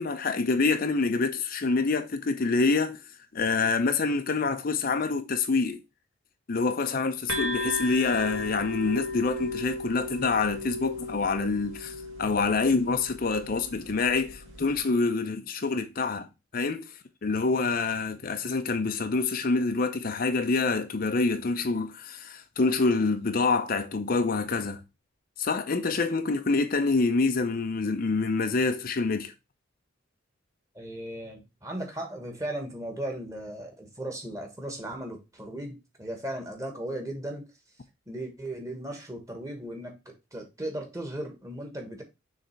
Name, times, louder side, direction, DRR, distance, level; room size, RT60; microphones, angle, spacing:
voice 1, 0.0-3.0 3.3-5.8 6.5-16.3 16.5-16.8 17.2-24.8 25.4-29.3, left 4 dB, 45° left, 0.6 m, -26 dB
sound 1, 7.3-14.8, left 2 dB, 85° right, 1.8 m, -36 dB
voice 2, 30.7-37.5 38.1-42.0, right 1 dB, 15° right, 1.4 m, -37 dB
6.6 x 3.3 x 4.4 m
head